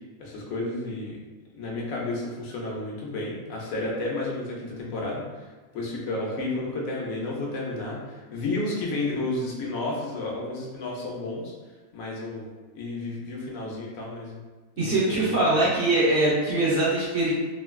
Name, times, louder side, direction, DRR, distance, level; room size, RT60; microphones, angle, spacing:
voice 1, 0.2-1.2 1.5-5.2 5.7-11.5 11.9-12.5 12.8-14.4 14.8-15.6, left 2 dB, 75° left, -3 dB, 1.0 m, -32 dB
voice 2, 14.8-17.3, right 2 dB, 65° right, -9 dB, 0.9 m, -22 dB
3.1 x 2.2 x 2.2 m, 1.3 s
omnidirectional pair, 1.5 m